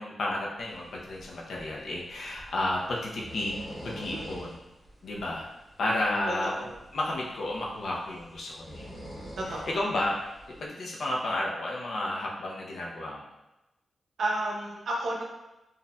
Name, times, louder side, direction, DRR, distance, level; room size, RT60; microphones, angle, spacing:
voice 1, 0.0-4.6 5.0-5.5 5.8-6.6 6.9-8.9 9.7-10.2 10.6-13.2, left 1 dB, 70° left, -2 dB, 0.6 m, -32 dB
sound 1, 0.6-10.7, equal, 15° left, 1.4 m, -47 dB
voice 2, 4.1-4.4 6.3-6.8 9.4-9.8 14.2-15.2, right 1 dB, 70° right, -1 dB, 0.7 m, -32 dB
4.0 x 2.6 x 2.2 m, 0.97 s
wide cardioid pair, 100°, 0 cm